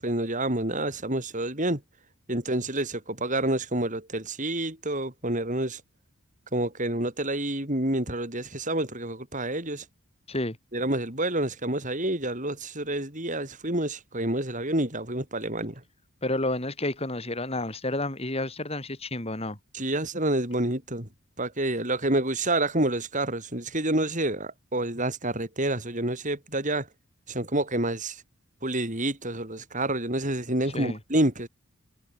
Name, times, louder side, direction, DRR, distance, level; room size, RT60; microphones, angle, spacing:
voice 1, 0.0-1.8 2.3-5.8 6.5-9.8 10.7-15.7 19.7-21.1 21.4-26.9 27.3-28.2 28.6-31.5, right 1 dB, 35° right, 7.2 m, -28 dB
voice 2, 16.2-19.6 30.6-31.0, left 2 dB, 25° left, 3.4 m, -30 dB
head